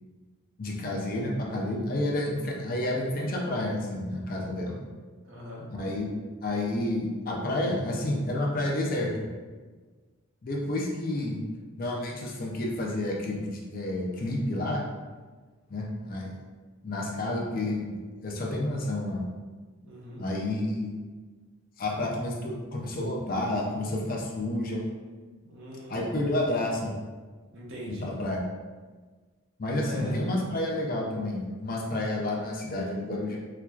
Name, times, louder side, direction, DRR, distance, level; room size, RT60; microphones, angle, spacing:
voice 1, 0.6-4.8 5.7-6.1 6.4-9.3 10.4-11.4 11.8-14.9 15.7-16.3 16.8-18.0 18.2-19.2 20.2-21.0 21.8-24.8 25.9-26.9 28.0-28.4 29.6-33.4, left 1 dB, 40° left, -1 dB, 0.5 m, -30 dB
voice 2, 5.2-5.7 19.8-20.3 25.4-26.2 27.5-28.2 29.8-30.2, equal, 60° right, -4 dB, 0.8 m, -41 dB
4.4 x 2.3 x 2.4 m, 1.4 s
head